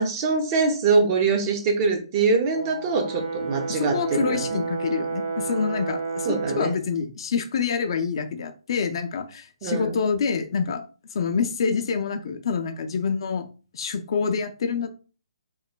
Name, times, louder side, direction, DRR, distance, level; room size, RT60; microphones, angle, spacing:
voice 1, 0.0-4.6 6.3-6.8 9.6-10.0, right 4 dB, 30° right, 4 dB, 0.5 m, -23 dB
Brass instrument, 2.5-6.8, right 4 dB, 75° right, 1.0 m, -31 dB
voice 2, 3.7-10.8 11.1-13.5 13.7-14.9, left 5 dB, 55° left, 8 dB, 0.3 m, -27 dB
3.0 x 2.1 x 2.2 m, 0.35 s
hypercardioid pair, 150°, 3 cm